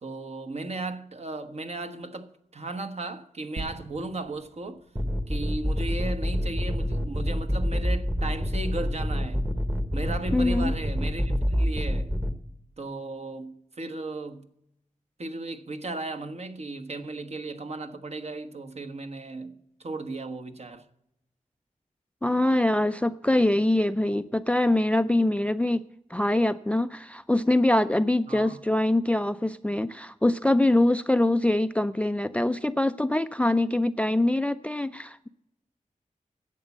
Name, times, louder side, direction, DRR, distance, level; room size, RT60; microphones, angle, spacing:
voice 1, 0.0-4.8 5.3-9.4 9.9-12.1 12.8-14.5 15.2-20.8 28.3-28.6, right 2 dB, 50° right, 1.2 m, -36 dB
sound 1, 3.6-7.2 7.8-7.9, right 2 dB, 85° right, 3.7 m, -44 dB
sound 2, 4.9-12.3, equal, 15° right, 1.0 m, -27 dB
voice 2, 10.3-10.7 22.2-25.8 26.1-35.3, left 1 dB, 10° left, 0.4 m, -24 dB
11.5 x 8.2 x 7.2 m
wide cardioid pair, 100°, 14 cm